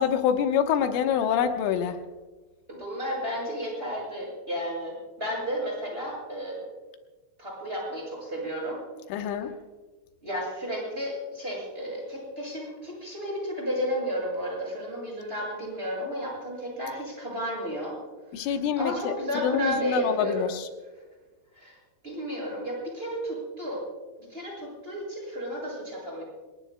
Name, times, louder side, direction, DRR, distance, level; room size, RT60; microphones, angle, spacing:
voice 1, 0.0-2.0 9.1-9.5 18.3-20.7, left 8 dB, 90° left, 5 dB, 3.7 m, -26 dB
voice 2, 2.7-6.6 7.4-8.8 10.2-18.0 18.4-20.4 21.5-21.7 22.0-23.8 24.3-26.2, equal, 10° right, -3 dB, 6.7 m, -32 dB
26.0 x 21.0 x 2.2 m, 1.3 s
omnidirectional pair, 5.5 m